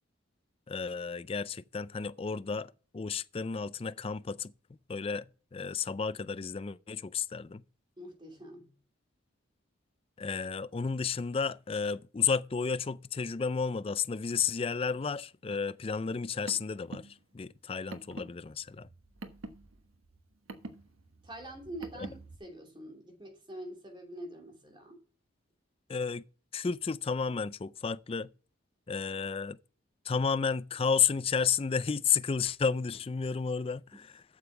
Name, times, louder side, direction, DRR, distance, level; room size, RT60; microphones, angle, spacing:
voice 1, 0.7-4.5 4.9-5.3 5.5-7.6 10.2-17.1 17.3-18.9 22.0-22.1 25.9-26.2 26.5-28.3 28.9-29.6 30.1-34.2, left 6 dB, 30° left, 0.4 m, -32 dB
voice 2, 8.0-8.7 21.2-25.0 33.9-34.1, right 1 dB, 25° right, 2.7 m, -45 dB
Car, 16.1-22.4, right 2 dB, 90° right, 1.2 m, -47 dB
8.0 x 7.1 x 5.6 m
head